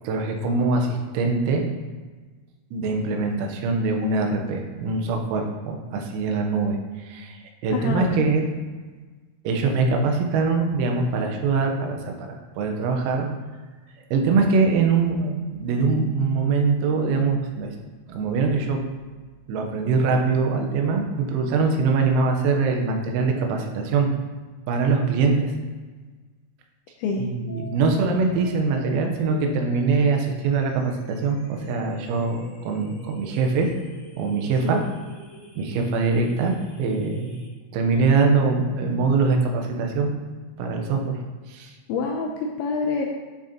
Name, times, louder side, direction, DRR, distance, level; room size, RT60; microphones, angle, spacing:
voice 1, 0.0-1.6 2.7-8.4 9.5-13.3 14.1-17.8 18.1-18.8 19.5-24.1 24.7-25.5 27.2-33.7 34.2-34.8 35.6-37.3 37.7-40.1 40.6-41.1 41.5-41.7, right 4 dB, 90° right, 3 dB, 3.7 m, -23 dB
voice 2, 7.7-8.0 27.0-27.3 34.6-34.8 41.9-43.0, left 4 dB, 80° left, 0 dB, 2.7 m, -26 dB
sound 1, 27.5-37.5, left 1 dB, 55° left, 3.5 m, -46 dB
12.0 x 6.4 x 2.9 m, 1.4 s
omnidirectional pair, 5.9 m